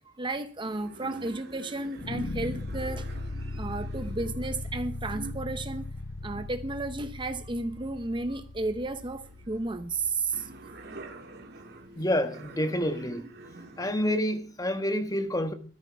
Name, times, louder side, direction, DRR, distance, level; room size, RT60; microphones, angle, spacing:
voice 1, 0.1-3.1 3.4-5.9 6.2-10.5, right 2 dB, 25° right, 0.8 m, -33 dB
sound 1, 0.6-8.3 8.7-14.2 14.6-14.8, right 2 dB, 60° right, 2.4 m, -47 dB
sound 2, 2.0-11.1, left 2 dB, 60° left, 0.7 m, -39 dB
voice 2, 12.0-13.3 13.8-15.5, left 1 dB, 20° left, 1.4 m, -28 dB
15.0 x 13.0 x 4.7 m
head